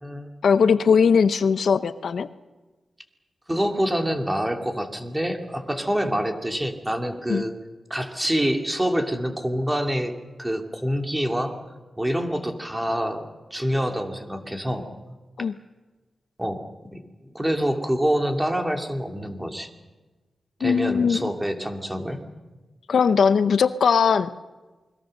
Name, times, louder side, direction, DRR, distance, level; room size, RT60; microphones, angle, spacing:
voice 1, 0.4-2.3 7.3-7.4 15.4-15.6 20.6-21.3 22.9-24.3, left 6 dB, 75° left, 13 dB, 0.7 m, -19 dB
voice 2, 3.5-7.5 7.9-10.1 10.4-11.5 12.0-13.3 13.5-14.9 16.4-16.6 16.9-19.7 20.6-22.2, equal, 10° right, 4 dB, 2.7 m, -26 dB
28.0 x 21.5 x 6.6 m, 1.2 s
wide cardioid pair, 100°, 0 cm